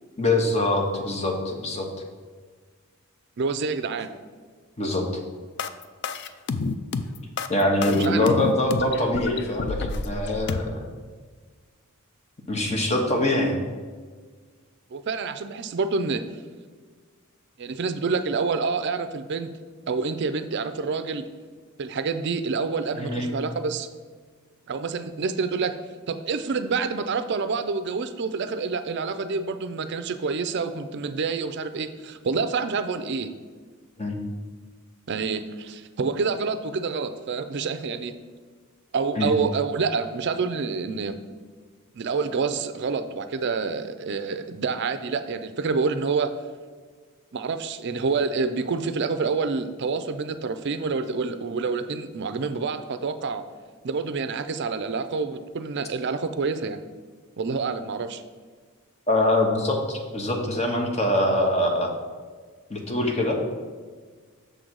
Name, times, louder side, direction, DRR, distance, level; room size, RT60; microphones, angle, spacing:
voice 1, 0.2-1.9 4.8-5.1 7.5-10.9 12.5-13.6 23.0-23.3 34.0-34.2 39.2-39.3 59.1-61.9 62.7-63.4, left 1 dB, 30° left, 2 dB, 0.9 m, -24 dB
voice 2, 3.4-4.1 7.8-8.3 14.9-16.2 17.6-19.5 19.9-21.3 21.8-23.9 24.7-25.8 26.1-33.3 35.1-38.1 38.9-41.2 42.0-46.3 47.3-53.4 53.8-56.8 57.4-58.2, right 4 dB, 50° right, 10 dB, 0.4 m, -27 dB
sound 1, 5.6-10.6, left 4 dB, 50° left, 0.4 m, -29 dB
6.7 x 3.9 x 6.2 m, 1.5 s
head